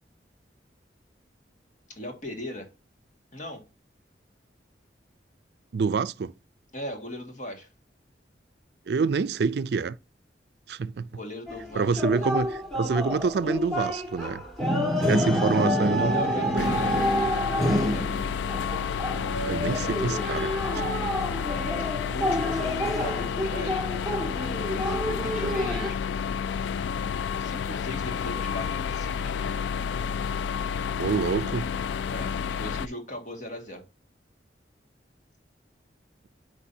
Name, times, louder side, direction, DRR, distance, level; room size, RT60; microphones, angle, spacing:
voice 1, 2.0-2.7 3.3-3.6 6.7-7.7 11.1-12.4 16.0-18.2 19.6-20.4 22.0-23.9 24.7-26.0 27.4-29.3 32.1-33.8, left 1 dB, 45° left, 1.9 m, -38 dB
voice 2, 5.7-6.3 8.9-10.0 10.7-11.1 11.8-14.4 15.1-16.1 16.5-16.8 19.4-20.5 25.4-25.5 31.0-31.7, right 5 dB, 65° right, 0.4 m, -27 dB
sound 1, 11.5-25.9, equal, ahead, 1.6 m, -28 dB
sound 2, 16.6-32.9, left 7 dB, 85° left, 0.3 m, -30 dB
8.5 x 4.9 x 2.7 m
head